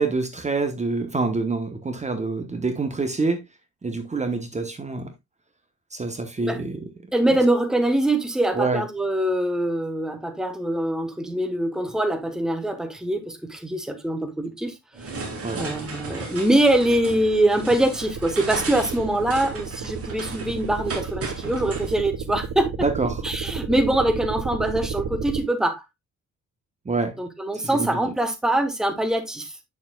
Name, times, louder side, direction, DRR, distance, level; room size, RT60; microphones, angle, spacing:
voice 1, 0.0-3.4 3.8-5.1 5.9-6.9 8.5-8.9 15.4-15.6 22.8-23.2 26.8-27.2 27.8-28.0, right 3 dB, 25° right, 1.0 m, -26 dB
voice 2, 7.1-15.2 15.6-22.9 23.2-25.8 27.2-29.5, right 1 dB, ahead, 1.1 m, -23 dB
sound 1, 14.9-21.9, right 3 dB, 50° right, 2.7 m, -35 dB
sound 2, 16.6-25.4, right 6 dB, 80° right, 1.2 m, -33 dB
8.3 x 6.9 x 2.3 m
cardioid pair, 120°, 30 cm